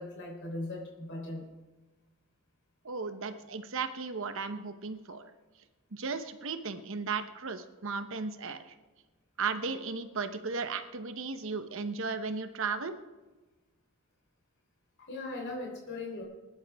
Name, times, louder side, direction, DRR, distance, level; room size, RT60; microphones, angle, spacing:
voice 1, 0.0-1.5 15.0-16.2, left 2 dB, 55° left, 0 dB, 3.9 m, -39 dB
voice 2, 2.8-5.3 5.9-8.7 9.4-13.0, right 4 dB, 60° right, 9 dB, 1.0 m, -35 dB
20.5 x 11.0 x 3.6 m, 1.2 s
head